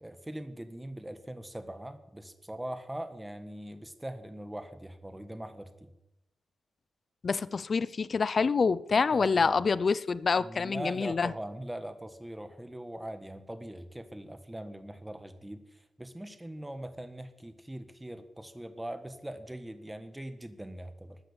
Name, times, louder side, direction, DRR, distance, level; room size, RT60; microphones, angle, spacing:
voice 1, 0.0-5.9 9.1-9.6 10.4-21.2, right 1 dB, 10° right, 1.3 m, -41 dB
voice 2, 7.2-11.3, left 5 dB, 45° left, 0.5 m, -27 dB
13.0 x 9.5 x 7.0 m
cardioid pair, 95°, 0 cm